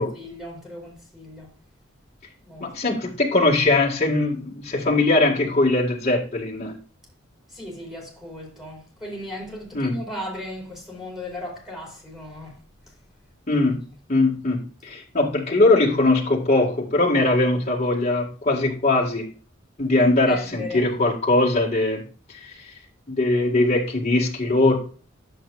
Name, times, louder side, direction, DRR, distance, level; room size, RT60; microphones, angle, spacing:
voice 1, 0.0-1.5 2.4-3.0 7.5-12.6 13.5-13.6 20.0-20.8, left 1 dB, ahead, 4.6 m, -37 dB
voice 2, 2.6-6.8 9.7-9.9 13.5-13.8 14.1-19.3 19.8-22.0 22.4-22.5 23.1-24.8, left 2 dB, 35° left, 1.9 m, -21 dB
10.5 x 7.8 x 2.5 m
head